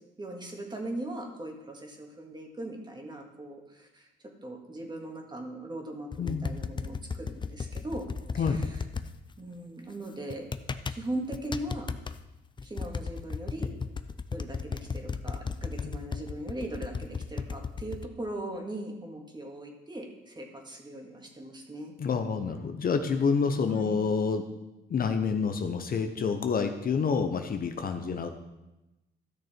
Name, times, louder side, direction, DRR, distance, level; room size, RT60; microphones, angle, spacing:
voice 1, 0.2-4.1 4.4-8.1 8.4-8.7 9.4-10.5 10.9-11.9 12.6-13.7 14.3-21.9 23.7-24.0 28.0-28.3, right 1 dB, 20° right, 2 dB, 2.0 m, -39 dB
sound 1, 6.1-9.1 10.3-11.0 11.3-12.1 12.6-18.1, left 5 dB, 25° left, 0.5 m, -34 dB
voice 2, 6.2-6.5 8.4-8.6 15.8-16.0 22.0-24.4 24.9-28.3, left 5 dB, 45° left, 6 dB, 0.8 m, -28 dB
13.0 x 6.2 x 4.5 m, 1.0 s
cardioid pair, 90°, 20 cm